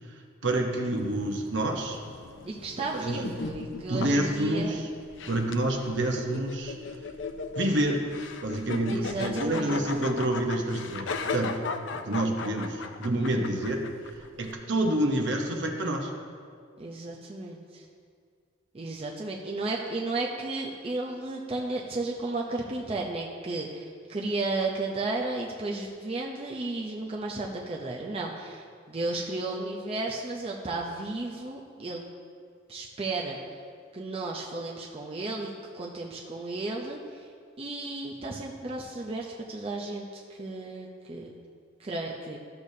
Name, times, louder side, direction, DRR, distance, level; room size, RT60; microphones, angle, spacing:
voice 1, 0.4-2.0 2.9-3.2 3.9-4.9 5.3-6.7 7.6-8.0 8.4-11.6 11.9-13.9 14.4-16.1, right 1 dB, 65° right, 2 dB, 1.0 m, -28 dB
sound 1, 0.9-14.5, left 4 dB, 70° left, 0.5 m, -37 dB
voice 2, 2.4-4.8 8.9-9.8 16.8-17.8 18.7-32.0 32.7-33.4 33.9-37.3 37.6-41.3 41.8-42.4, right 2 dB, 30° right, -2 dB, 0.6 m, -33 dB
13.5 x 6.8 x 2.7 m, 2.1 s
head